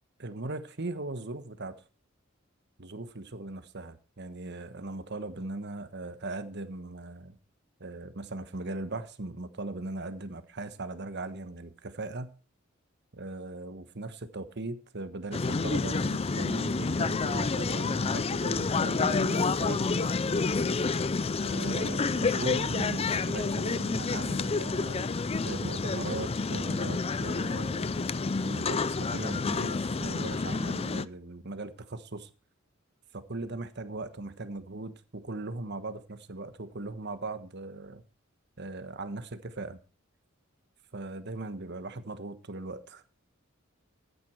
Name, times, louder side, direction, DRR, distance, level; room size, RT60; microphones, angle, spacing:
voice 1, 0.2-1.7 2.8-7.4 7.8-12.4 13.1-20.0 21.4-25.1 25.4-28.1 28.4-32.3 33.1-38.0 38.6-39.8 40.9-43.0, right 2 dB, 55° right, 1.3 m, -39 dB
sound 1, 15.3-31.1, left 4 dB, 30° left, 0.5 m, -29 dB
13.5 x 9.6 x 4.6 m
head